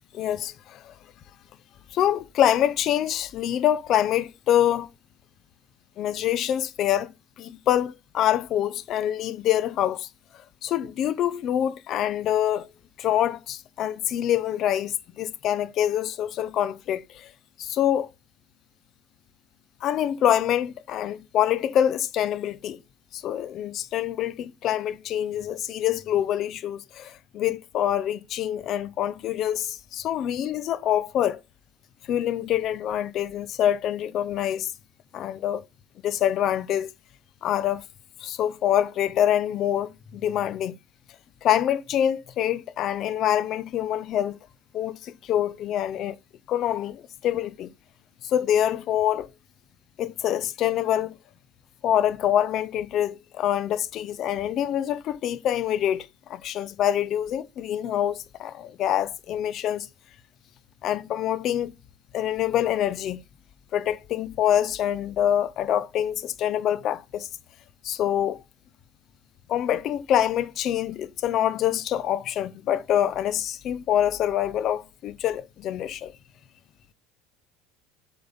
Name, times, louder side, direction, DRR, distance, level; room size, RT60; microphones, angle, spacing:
voice 1, 0.1-0.9 1.9-4.9 6.0-7.1 7.4-10.1 10.6-12.7 13.0-17.3 17.6-18.1 19.8-22.8 23.1-31.4 32.1-34.7 35.1-35.6 36.0-36.9 37.4-37.8 38.2-40.8 41.4-44.4 44.7-46.2 46.5-47.7 48.2-49.3 50.0-51.1 51.8-59.9 60.8-61.7 62.1-63.2 63.7-67.3 67.8-68.4 69.5-76.1, left 11 dB, 50° left, 0.7 m, -25 dB
7.7 x 3.9 x 5.3 m
hypercardioid pair, 90°, 0 cm